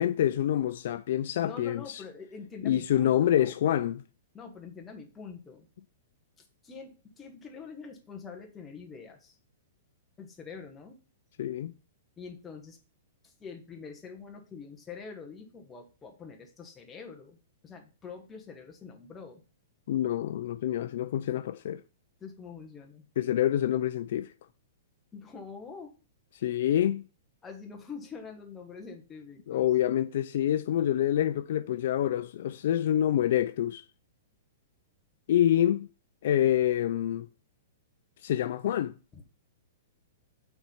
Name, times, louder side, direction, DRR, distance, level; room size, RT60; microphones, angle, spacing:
voice 1, 0.0-2.0 2.6-4.0 11.4-11.7 19.9-21.8 23.2-24.3 26.4-27.1 29.5-33.8 35.3-35.9 36.2-37.3 38.2-38.9, left 11 dB, 60° left, 0.3 m, -27 dB
voice 2, 1.4-3.5 4.3-5.7 6.4-9.4 10.2-11.0 12.2-12.8 13.2-17.4 17.6-19.4 22.2-23.0 25.1-25.9 27.4-29.7 39.1-39.2, left 5 dB, 15° left, 1.2 m, -45 dB
5.9 x 4.4 x 5.5 m
hypercardioid pair, 155°, 0 cm